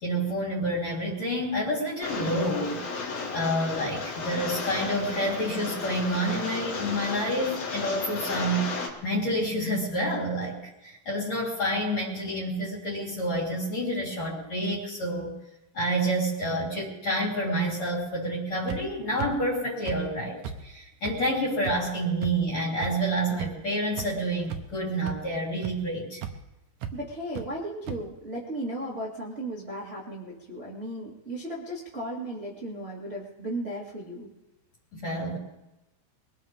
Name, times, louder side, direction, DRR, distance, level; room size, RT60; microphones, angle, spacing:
voice 1, 0.0-2.8 3.3-15.3 15.7-26.2 34.9-35.4, right 1 dB, 40° left, -3 dB, 4.6 m, -28 dB
Rain, 2.0-8.9, left 4 dB, 60° left, 4.1 m, -34 dB
sound 1, 18.7-18.8 19.2-19.3 19.9-20.0 20.4-20.6 21.0-21.1 21.6-21.8 22.2-22.3 22.8-22.9 23.4-23.5 24.0-24.1 24.5-24.7 25.0-25.2 25.6-25.7 26.2-26.3 26.8-26.9 27.4-27.5 27.9-28.0, right 9 dB, 70° right, 2.1 m, -34 dB
voice 2, 26.9-34.3, right 1 dB, 25° right, -4 dB, 1.4 m, -35 dB
23.0 x 17.0 x 3.7 m, 0.96 s
omnidirectional pair, 5.0 m